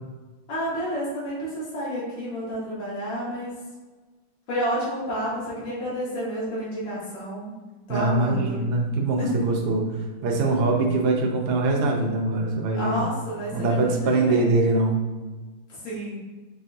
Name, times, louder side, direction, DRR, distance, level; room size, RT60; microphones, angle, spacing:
voice 1, 0.5-3.5 4.5-7.5 7.9-8.6 9.2-9.5 12.7-14.5 15.7-16.2, equal, 80° left, -7 dB, 2.3 m, -30 dB
voice 2, 7.9-9.8 10.2-13.0 13.5-15.0, right 2 dB, 85° right, 1 dB, 1.6 m, -23 dB
5.9 x 2.3 x 2.6 m, 1.3 s
omnidirectional pair, 2.4 m